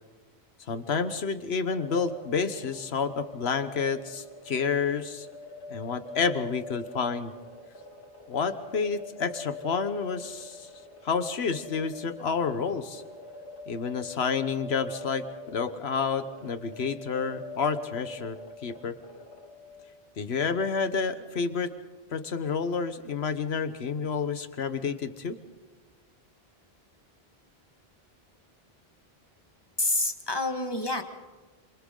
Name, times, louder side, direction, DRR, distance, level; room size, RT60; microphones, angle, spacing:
voice 1, 0.7-5.3 5.7-7.3 8.3-10.7 11.0-13.0 13.7-18.4 18.6-19.0 20.2-21.7 22.1-25.4, left 5 dB, 80° left, 10 dB, 1.4 m, -29 dB
sound 1, 1.7-20.1, left 3 dB, 60° left, 2.8 m, -44 dB
voice 2, 29.8-31.0, left 2 dB, 25° left, 5 dB, 1.7 m, -27 dB
27.5 x 27.0 x 3.9 m, 1.3 s
omnidirectional pair, 1.0 m